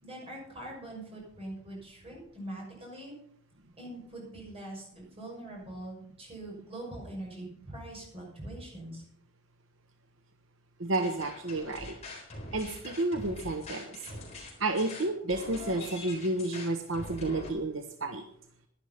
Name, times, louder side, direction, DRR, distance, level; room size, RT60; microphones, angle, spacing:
voice 1, 0.0-3.1 3.8-9.0, right 1 dB, 30° right, -2 dB, 6.2 m, -43 dB
voice 2, 10.8-11.9 12.5-14.0 14.6-18.2, right 2 dB, 70° right, 6 dB, 1.0 m, -31 dB
sound 1, 10.9-17.5, left 2 dB, 35° left, 4.1 m, -43 dB
11.5 x 11.0 x 5.6 m, 0.66 s
head